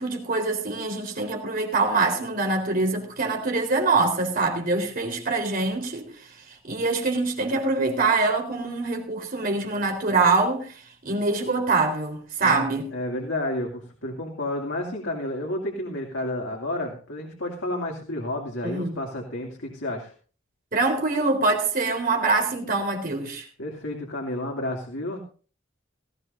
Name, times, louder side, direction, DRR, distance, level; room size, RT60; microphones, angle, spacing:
voice 1, 0.0-6.1 6.5-12.9 18.6-19.0 20.7-23.5, right 3 dB, 45° right, 4.0 m, -24 dB
voice 2, 12.4-20.1 23.6-25.2, left 1 dB, 85° left, 2.6 m, -31 dB
19.0 x 15.5 x 2.7 m
head